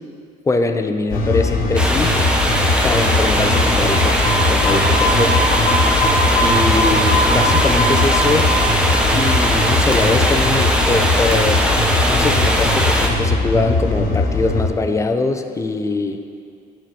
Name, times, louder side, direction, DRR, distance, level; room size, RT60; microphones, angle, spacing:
voice 1, 0.5-2.2 2.8-4.2 4.5-5.5 6.4-8.5 9.1-11.7 12.1-16.2, left 3 dB, 20° left, 7 dB, 0.5 m, -22 dB
sound 1, 1.1-14.7, left 2 dB, 60° left, 1.2 m, -19 dB
sound 2, 1.8-13.1, equal, 5° right, 0.8 m, -19 dB
8.1 x 4.4 x 6.2 m, 2.3 s
cardioid pair, 110°, 17 cm